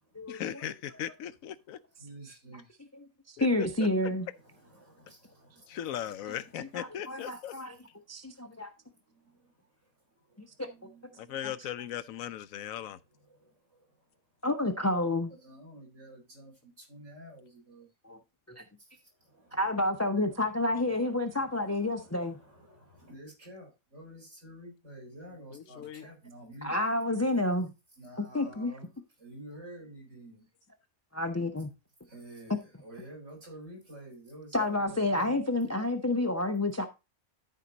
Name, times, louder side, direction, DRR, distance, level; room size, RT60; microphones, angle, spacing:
voice 1, 0.3-1.8 3.4-3.7 5.7-7.5 11.2-13.0 25.5-26.1, left 10 dB, 80° left, 1.0 m, -38 dB
voice 2, 2.0-2.6 4.3-6.0 6.3-6.5 7.2-7.6 10.6-11.5 13.3-13.5 15.3-17.9 19.3-19.8 20.2-26.8 28.0-28.9 29.2-30.4 32.1-35.6, right 1 dB, 60° right, 4.9 m, -50 dB
voice 3, 3.3-4.3 6.7-7.7 8.1-8.7 10.4-10.5 11.4-11.5 14.4-15.3 18.0-18.2 18.5-18.6 19.5-22.4 26.6-27.7 28.2-28.7 31.1-31.7 34.5-36.9, left 2 dB, 15° left, 0.6 m, -29 dB
13.0 x 4.6 x 3.9 m
omnidirectional pair, 1.4 m